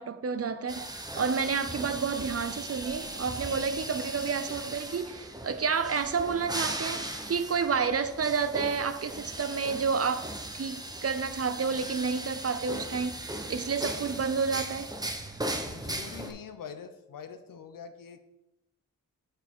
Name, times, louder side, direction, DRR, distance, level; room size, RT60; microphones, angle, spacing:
voice 1, 0.0-14.9, right 5 dB, 45° right, 0.7 m, -30 dB
sound 1, 0.7-16.3, right 1 dB, 10° right, 0.9 m, -38 dB
voice 2, 15.6-18.2, left 7 dB, 80° left, 0.7 m, -44 dB
6.5 x 6.0 x 3.7 m
cardioid pair, 40°, 33 cm